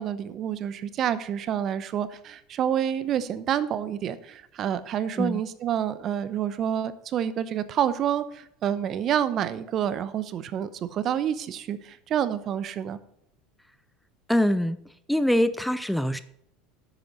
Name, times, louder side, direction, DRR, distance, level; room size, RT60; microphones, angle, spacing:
voice 1, 0.0-13.0, right 9 dB, 45° right, 15 dB, 0.8 m, -28 dB
voice 2, 14.3-14.8 15.1-16.2, left 1 dB, ahead, 13 dB, 0.6 m, -23 dB
10.5 x 8.3 x 4.1 m, 0.72 s
hypercardioid pair, 85°, 0 cm